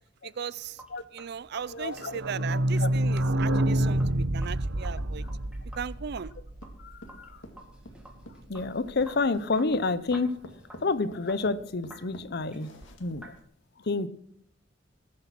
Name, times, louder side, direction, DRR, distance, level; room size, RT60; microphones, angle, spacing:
voice 1, 0.4-0.8 1.1-4.0 4.3-5.2 5.8-6.3, right 7 dB, 60° right, 0.5 m, -37 dB
Sink (filling or washing), 0.6-13.4, right 1 dB, 5° right, 2.3 m, -53 dB
voice 2, 1.7-2.2 2.8-2.9 3.4-3.6 6.8-7.3 8.5-10.4 10.8-12.7 13.0-13.3 13.9-14.1, left 3 dB, 60° left, 0.8 m, -29 dB
sound 1, 1.8-7.4 7.7-7.8 8.0-8.1 8.4-8.5, right 1 dB, 85° right, 0.9 m, -28 dB
sound 2, 6.6-13.4, left 1 dB, 85° left, 2.0 m, -48 dB
19.5 x 7.6 x 6.0 m
head